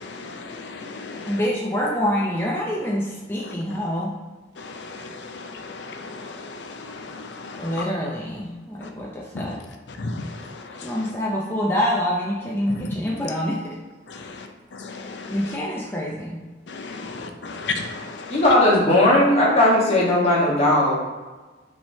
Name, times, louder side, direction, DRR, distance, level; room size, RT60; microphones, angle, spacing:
voice 1, 0.0-1.3 4.6-5.1 5.6-6.6 6.9-7.6 10.0-10.1 14.8-15.3 16.7-17.0 17.5-18.3, left 3 dB, 75° left, 0.6 m, -34 dB
voice 2, 1.3-4.1 7.6-9.6 10.8-13.8 15.3-16.4, equal, 10° left, 0.5 m, -26 dB
voice 3, 18.3-20.9, left 1 dB, 35° left, 1.2 m, -17 dB
5.8 x 3.4 x 2.7 m
head